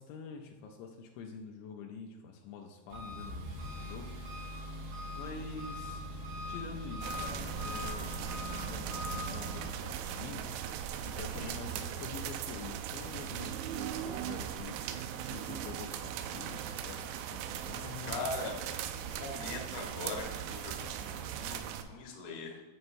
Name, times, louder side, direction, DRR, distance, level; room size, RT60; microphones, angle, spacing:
voice 1, 0.0-4.3 5.1-6.1 6.4-14.8 15.2-18.3, left 5 dB, 80° left, 2 dB, 2.9 m, -47 dB
Engine, 2.9-9.6, left 1 dB, 75° right, 4.5 m, -41 dB
sound 1, 7.0-21.8, right 9 dB, 90° right, 3.0 m, -39 dB
voice 2, 18.0-18.6 19.0-21.6 21.9-22.6, left 3 dB, 65° left, -1 dB, 2.6 m, -41 dB
9.4 x 7.8 x 2.6 m, 1.3 s
omnidirectional pair, 5.3 m